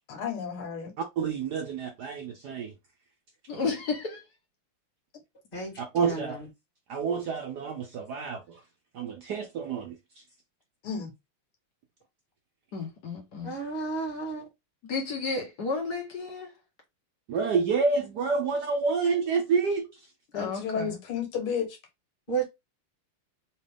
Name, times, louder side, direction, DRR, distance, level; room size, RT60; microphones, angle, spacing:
voice 1, 0.1-0.9 10.8-11.1 20.3-21.7, left 7 dB, 80° left, 2.0 m, -32 dB
voice 2, 1.0-2.7 5.8-6.4 6.9-8.6 8.9-10.0 17.3-20.0, right 5 dB, 65° right, 1.0 m, -28 dB
voice 3, 3.5-4.2 12.7-13.5 14.8-16.5 20.3-21.0, left 4 dB, 55° left, 1.4 m, -32 dB
voice 4, 5.5-6.5 13.4-14.5 22.3-22.4, right 4 dB, 25° left, 1.8 m, -33 dB
4.2 x 3.0 x 3.3 m
omnidirectional pair, 2.4 m